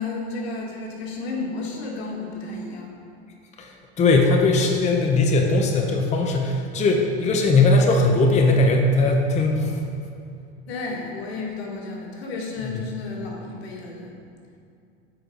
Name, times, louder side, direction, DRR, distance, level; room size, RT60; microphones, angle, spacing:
voice 1, 0.0-2.9 10.6-14.2, left 3 dB, 85° left, -1 dB, 1.7 m, -32 dB
voice 2, 4.0-9.8 12.6-12.7, left 2 dB, 20° left, 1 dB, 0.7 m, -19 dB
7.7 x 4.7 x 5.0 m, 2.5 s
supercardioid pair, 125°, 31 cm